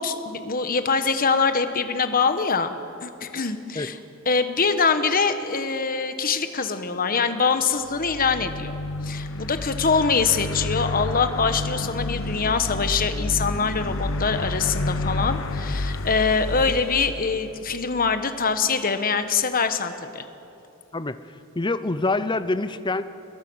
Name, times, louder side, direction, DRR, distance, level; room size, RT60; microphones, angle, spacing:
voice 1, 0.0-2.7 3.0-4.0 4.2-8.7 9.0-20.2, left 5 dB, 40° left, 9 dB, 1.3 m, -24 dB
sound 1, 7.9-18.1, left 2 dB, 60° left, 1.0 m, -30 dB
voice 2, 21.5-23.0, left 2 dB, 20° left, 13 dB, 0.7 m, -25 dB
29.5 x 21.5 x 6.4 m, 2.8 s
head